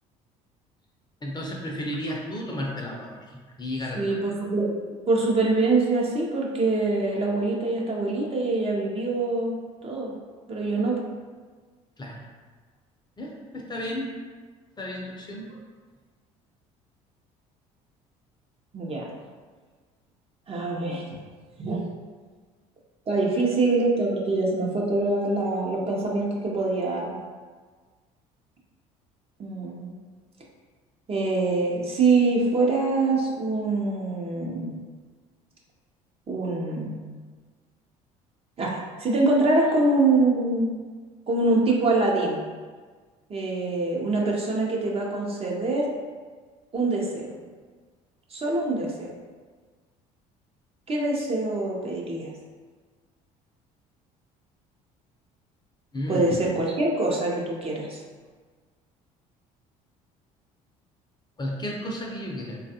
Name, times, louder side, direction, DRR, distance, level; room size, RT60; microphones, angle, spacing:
voice 1, 1.2-4.2 12.0-12.2 13.2-14.1 14.8-15.5 55.9-56.4 61.4-62.6, left 1 dB, 25° left, -2 dB, 0.6 m, -33 dB
voice 2, 4.0-9.6 9.8-10.1 10.5-11.0 18.7-19.1 20.5-21.0 21.6-21.8 23.1-27.2 29.4-29.9 31.1-34.7 36.3-37.1 38.6-40.8 41.3-42.4 43.3-45.9 46.7-47.3 48.3-49.1 50.9-52.3 56.1-58.0, right 2 dB, 35° right, -2 dB, 0.7 m, -24 dB
3.2 x 2.3 x 2.7 m, 1.5 s
supercardioid pair, 75°, 17 cm